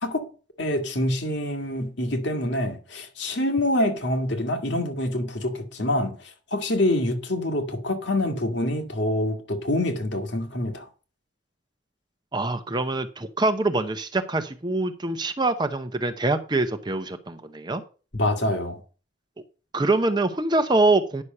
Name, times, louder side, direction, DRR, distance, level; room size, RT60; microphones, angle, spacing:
voice 1, 0.6-10.9 18.1-18.8, left 1 dB, 60° left, 1.9 m, -26 dB
voice 2, 12.3-17.8 19.7-21.2, right 2 dB, 20° right, 0.7 m, -24 dB
9.9 x 6.3 x 5.4 m
head